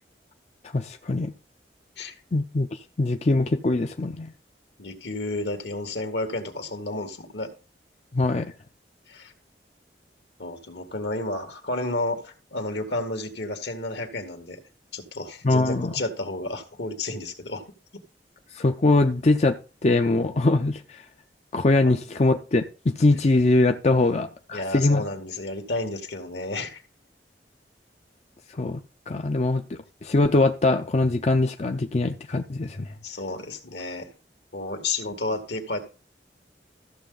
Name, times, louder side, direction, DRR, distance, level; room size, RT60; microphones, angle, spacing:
voice 1, 0.7-1.3 2.3-4.3 8.1-8.5 15.4-15.9 18.5-21.0 21.5-25.0 28.6-28.8 29.1-29.6 30.0-32.9, left 2 dB, 40° left, 0.5 m, -22 dB
voice 2, 4.8-7.5 9.1-9.3 10.4-14.6 14.9-17.6 21.9-22.0 24.5-26.8 33.0-34.1 34.5-35.8, left 2 dB, 75° left, 1.9 m, -31 dB
14.0 x 6.8 x 4.0 m
head